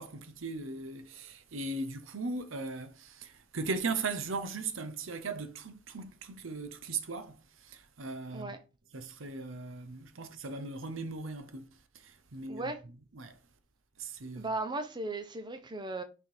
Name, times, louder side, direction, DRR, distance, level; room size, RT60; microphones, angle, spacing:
voice 1, 0.0-8.6 8.9-11.7 11.9-12.7 13.1-13.4 14.0-14.5, right 3 dB, 70° right, 0.8 m, -38 dB
voice 2, 12.5-12.8 14.3-16.0, right 2 dB, 20° right, 0.8 m, -36 dB
6.0 x 3.6 x 4.4 m
head